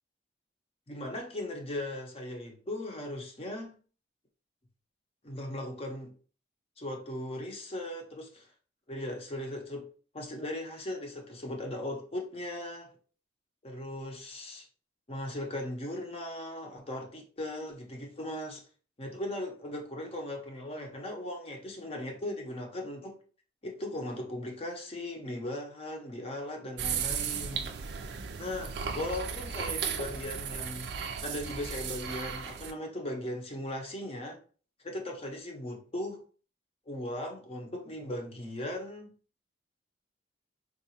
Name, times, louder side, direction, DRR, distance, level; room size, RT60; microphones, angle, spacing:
voice 1, 0.9-3.7 5.2-6.1 6.8-8.5 8.9-9.9 10.1-12.9 13.6-14.7 15.1-18.6 19.0-23.2 23.6-27.6 28.4-30.9 31.2-34.4 34.8-36.2 36.9-39.1, left 1 dB, 30° left, 0.6 m, -38 dB
sound 1, 26.8-32.7, right 7 dB, 60° right, 0.4 m, -35 dB
3.7 x 2.4 x 2.8 m
head